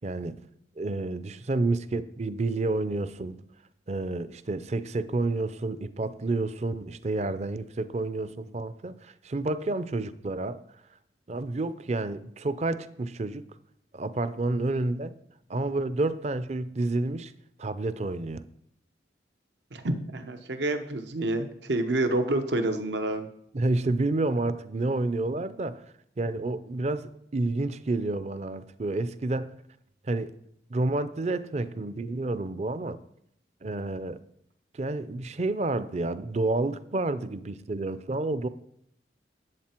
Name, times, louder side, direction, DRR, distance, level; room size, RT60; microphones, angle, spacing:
voice 1, 0.0-0.4 0.8-3.4 3.9-10.6 11.3-13.4 13.9-15.1 15.5-17.3 17.6-18.4 23.5-25.8 26.2-29.5 30.0-30.3 30.7-33.0 33.6-34.2 34.7-38.5, right 2 dB, 40° right, 0.5 m, -29 dB
voice 2, 19.7-23.3, right 2 dB, 85° right, 1.0 m, -28 dB
11.0 x 8.1 x 4.5 m
head